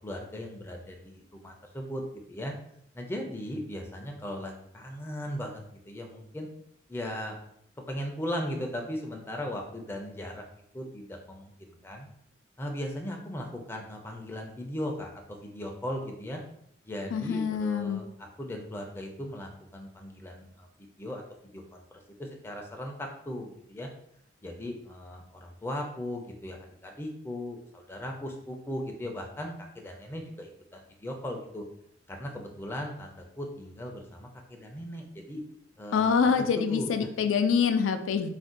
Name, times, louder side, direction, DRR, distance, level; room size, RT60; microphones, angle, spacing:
voice 1, 0.0-2.0 2.3-2.5 2.9-6.5 6.9-7.4 7.9-10.4 10.7-12.1 12.6-16.4 16.9-21.8 22.2-23.9 24.4-31.6 32.1-35.4 35.8-36.4 36.7-36.9, left 1 dB, 10° left, 2 dB, 0.4 m, -38 dB
voice 2, 17.1-18.0 35.9-38.3, left 6 dB, 90° left, 8 dB, 0.3 m, -25 dB
2.5 x 2.1 x 3.7 m, 0.71 s
head